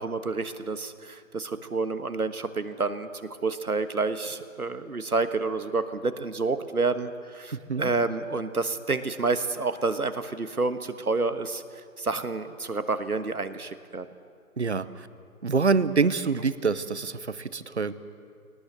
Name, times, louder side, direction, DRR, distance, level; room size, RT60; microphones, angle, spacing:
voice 1, 0.0-3.1 3.4-11.6 12.0-14.1, right 3 dB, 85° right, 11 dB, 1.5 m, -29 dB
voice 2, 7.5-7.9 14.6-15.1 15.4-17.9, right 4 dB, 50° right, 15 dB, 0.9 m, -26 dB
20.5 x 18.5 x 7.9 m, 2.3 s
figure-of-eight pair, 160°, 43 cm